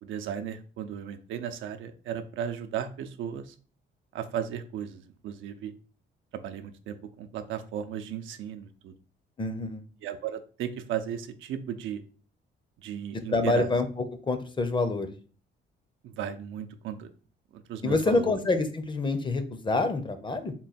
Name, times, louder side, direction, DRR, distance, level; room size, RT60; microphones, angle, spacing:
voice 1, 0.0-3.5 4.1-5.7 6.3-8.9 10.0-12.0 12.8-13.7 16.0-17.1 17.5-18.4, right 9 dB, 80° right, 8 dB, 0.5 m, -35 dB
voice 2, 9.4-9.8 13.3-13.9 14.3-15.1 17.8-20.5, left 3 dB, 25° left, 9 dB, 0.6 m, -26 dB
3.7 x 2.2 x 4.1 m, 0.39 s
cardioid pair, 90°, 20 cm